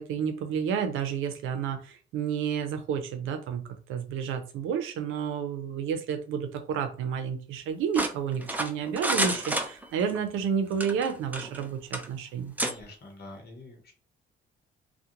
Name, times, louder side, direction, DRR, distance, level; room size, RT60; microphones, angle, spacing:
voice 1, 0.0-12.5, right 7 dB, 90° right, 7 dB, 0.5 m, -31 dB
sound 1, 7.9-10.2 10.7-11.6 11.9-12.1 12.6-12.7, right 1 dB, 10° right, 0.4 m, -30 dB
voice 2, 12.6-13.9, left 2 dB, 55° left, 2 dB, 0.9 m, -45 dB
2.4 x 2.1 x 2.8 m, 0.38 s
cardioid pair, 90°, 20 cm